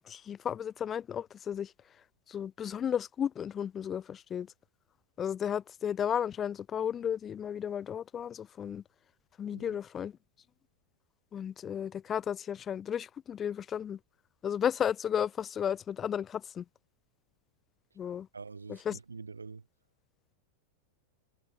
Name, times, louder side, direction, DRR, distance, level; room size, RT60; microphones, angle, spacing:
voice 1, 0.0-1.7 2.3-4.5 5.2-8.8 9.4-10.1 11.3-14.0 14.4-16.6 18.0-18.3 18.7-19.0, left 8 dB, 25° left, 0.5 m, -33 dB
voice 2, 18.3-19.7, right 4 dB, 75° right, 3.2 m, -45 dB
figure-of-eight pair, 90°, 0 cm